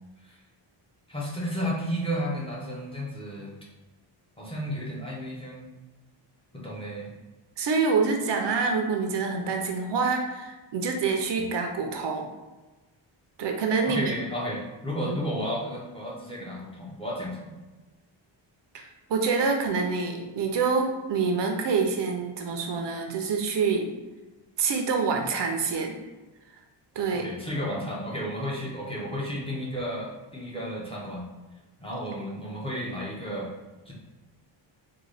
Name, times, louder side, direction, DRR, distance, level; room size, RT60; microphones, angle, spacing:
voice 1, 1.1-3.5 4.4-5.6 6.5-7.1 11.4-11.5 13.8-17.5 27.1-31.3 31.8-33.5 33.9-34.0, equal, 10° left, -4 dB, 0.6 m, -33 dB
voice 2, 7.6-12.3 13.4-14.1 15.0-15.2 18.7-23.9 24.6-26.0 27.0-27.3 32.2-32.3, right 4 dB, 60° right, 3 dB, 0.6 m, -26 dB
3.7 x 2.2 x 3.2 m, 1.2 s
wide cardioid pair, 150°, 48 cm